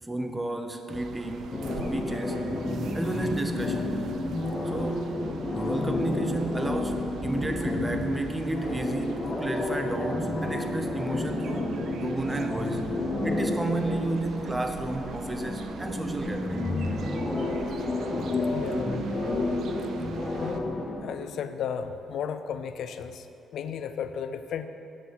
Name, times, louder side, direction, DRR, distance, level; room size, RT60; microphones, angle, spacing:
voice 1, 0.0-2.6 2.9-4.0 4.7-5.2 5.5-11.7 12.0-12.9 13.2-16.8, right 2 dB, 15° right, 6 dB, 0.6 m, -32 dB
sound 1, 0.9-20.6, right 5 dB, 70° right, 0.4 m, -42 dB
sound 2, 1.5-20.9, left 2 dB, 30° left, 0.9 m, -30 dB
voice 2, 18.5-19.3 20.4-20.6 21.0-23.3 23.5-24.7, left 7 dB, 70° left, 10 dB, 0.4 m, -34 dB
7.2 x 6.5 x 4.0 m, 2.8 s
cardioid pair, 90°, 0 cm